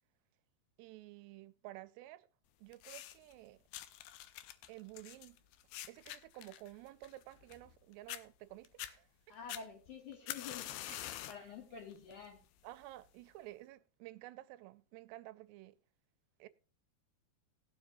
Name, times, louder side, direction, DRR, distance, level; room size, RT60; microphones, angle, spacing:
voice 1, 0.8-2.3 2.6-3.6 4.7-5.4 5.9-9.4 10.9-11.1 11.4-11.5 12.6-15.8 16.4-16.5, right 16 dB, 85° right, 2.7 m, -52 dB
sound 1, 2.7-3.3 3.7-7.8 8.1-8.2 8.7-8.9 9.5-11.5 11.9-12.3 13.1-13.2, left 13 dB, 80° left, 2.3 m, -46 dB
voice 2, 9.3-10.7 11.3-12.4, left 6 dB, 50° left, 3.6 m, -48 dB
19.0 x 7.1 x 2.7 m
omnidirectional pair, 4.8 m